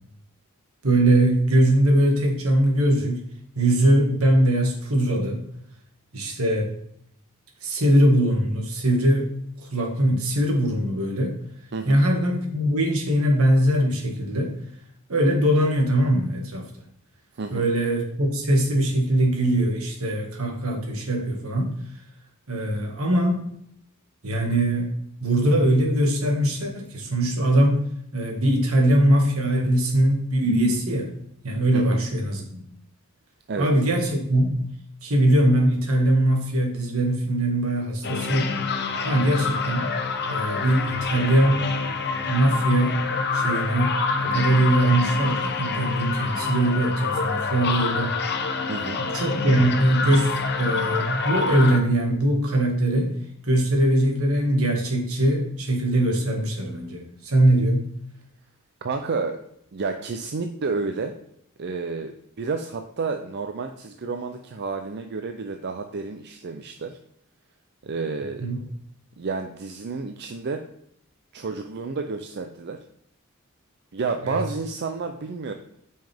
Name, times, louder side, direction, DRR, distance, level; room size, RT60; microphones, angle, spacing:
voice 1, 0.8-3.2 3.6-5.5 6.1-6.7 7.6-9.3 9.6-11.4 11.9-14.5 15.1-16.7 17.5-21.7 22.5-23.4 24.2-24.9 25.2-27.8 28.1-31.1 31.4-32.6 33.6-34.7 35.0-38.6 39.0-39.9 40.3-41.7 42.3-43.0 43.3-48.2 49.0-53.1 53.5-57.9 68.4-68.6 74.3-74.4, right 1 dB, 75° right, 1 dB, 1.9 m, -21 dB
voice 2, 11.7-12.0 17.4-17.6 31.7-32.0 33.5-33.7 48.7-49.0 58.8-59.4 59.7-61.1 61.6-62.1 62.4-67.0 67.8-68.5 69.2-70.6 71.3-72.8 73.9-75.5, right 4 dB, 50° right, 6 dB, 0.5 m, -30 dB
sound 1, 38.0-51.8, left 4 dB, 50° left, 0.9 m, -27 dB
9.0 x 5.5 x 3.5 m, 0.72 s
head